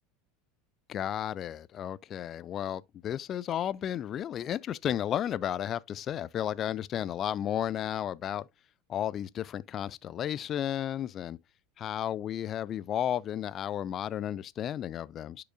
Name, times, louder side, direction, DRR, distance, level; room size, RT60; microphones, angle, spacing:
voice 1, 0.9-8.5 8.9-11.4 11.8-15.4, left 10 dB, 35° left, 0.3 m, -33 dB
10.0 x 4.8 x 2.4 m
figure-of-eight pair, 75°, 0 cm